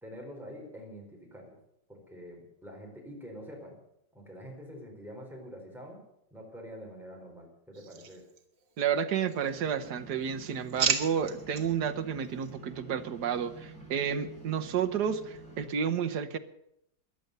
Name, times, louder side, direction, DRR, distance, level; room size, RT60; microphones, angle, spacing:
voice 1, 0.0-1.6 1.9-3.8 4.1-6.0 6.3-8.3, equal, ahead, -1 dB, 4.5 m, -46 dB
sound 1, 7.7-8.8 9.2-9.9 10.2-11.7 12.2-12.5, right 7 dB, 85° right, 2.2 m, -34 dB
voice 2, 8.8-16.4, right 7 dB, 65° right, 7 dB, 1.5 m, -31 dB
sound 2, 9.4-15.7, right 3 dB, 45° right, 5.2 m, -49 dB
15.5 x 11.0 x 6.8 m, 0.79 s
omnidirectional pair, 2.0 m